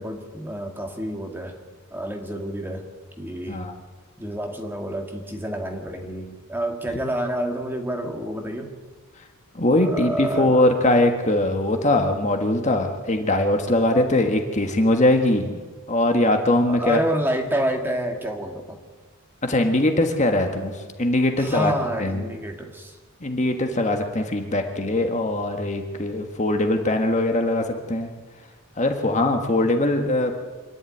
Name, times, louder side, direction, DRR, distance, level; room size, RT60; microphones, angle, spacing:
voice 1, 0.0-1.6 1.9-2.9 3.2-3.7 4.2-8.7 9.8-10.9 16.7-18.8 21.4-23.0, right 1 dB, 10° right, 3 dB, 1.9 m, -28 dB
voice 2, 9.5-15.6 15.9-17.0 19.4-21.7 22.0-22.3 23.2-28.1 28.8-30.4, left 1 dB, 35° left, 4 dB, 1.6 m, -21 dB
26.0 x 11.0 x 9.4 m, 1.4 s
head